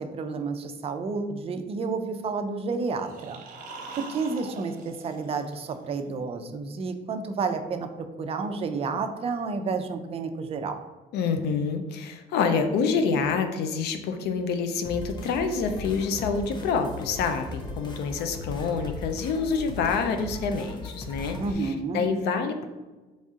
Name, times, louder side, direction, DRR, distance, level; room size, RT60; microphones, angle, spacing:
voice 1, 0.0-3.4 4.0-7.9 8.2-10.8 21.4-22.1, right 4 dB, 35° right, 6 dB, 0.5 m, -30 dB
sound 1, 2.9-6.0, right 3 dB, 55° right, 1.0 m, -43 dB
voice 2, 11.1-22.7, left 5 dB, 75° left, 7 dB, 0.5 m, -27 dB
sound 2, 14.8-21.5, left 2 dB, 25° left, 0.7 m, -38 dB
4.0 x 3.6 x 3.7 m, 1.2 s
cardioid pair, 110°, 17 cm